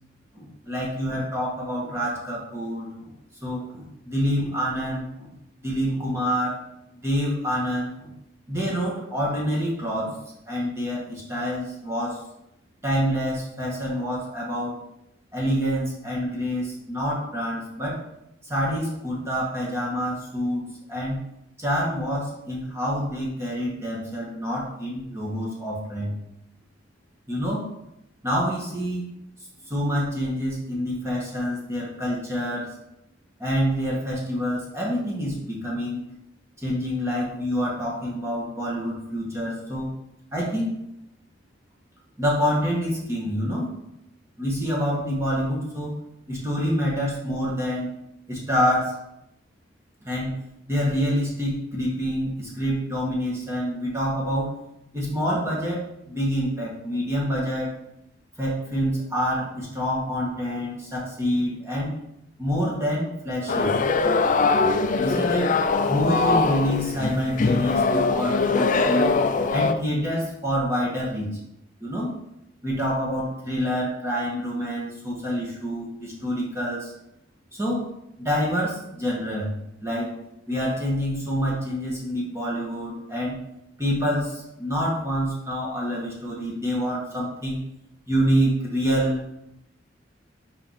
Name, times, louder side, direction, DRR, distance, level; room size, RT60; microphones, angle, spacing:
voice 1, 0.3-3.1 3.4-5.3 5.6-6.6 7.0-8.1 8.5-10.2 10.5-12.2 12.8-14.8 15.3-18.0 18.5-21.2 21.6-26.1 27.3-27.7 28.2-29.0 29.7-32.7 33.4-36.0 36.6-39.9 40.3-40.7 42.2-43.7 44.4-46.0 46.3-47.9 48.3-49.0 50.0-50.4 50.7-54.5 54.9-57.7 58.4-62.0 62.4-63.7 65.0-65.6 65.9-69.1 69.5-71.4 71.8-72.1 72.6-76.9 77.5-77.9 78.2-80.1 80.5-83.4 83.8-87.6 88.1-89.2, equal, 15° right, -4 dB, 1.6 m, -27 dB
sound 1, 63.5-69.7, left 4 dB, 45° left, 0.5 m, -22 dB
6.4 x 5.1 x 4.3 m, 0.83 s
head